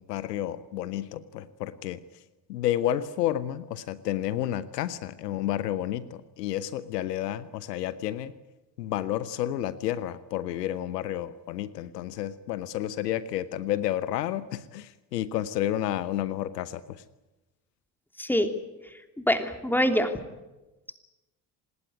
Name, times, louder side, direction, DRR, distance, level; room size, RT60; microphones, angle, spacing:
voice 1, 0.0-2.0 2.5-8.3 8.8-17.0, left 12 dB, 70° left, 16 dB, 1.0 m, -31 dB
voice 2, 18.2-18.5 19.2-20.1, equal, 5° left, 7 dB, 2.9 m, -24 dB
27.0 x 19.5 x 9.4 m, 1.1 s
figure-of-eight pair, 55°, 50 cm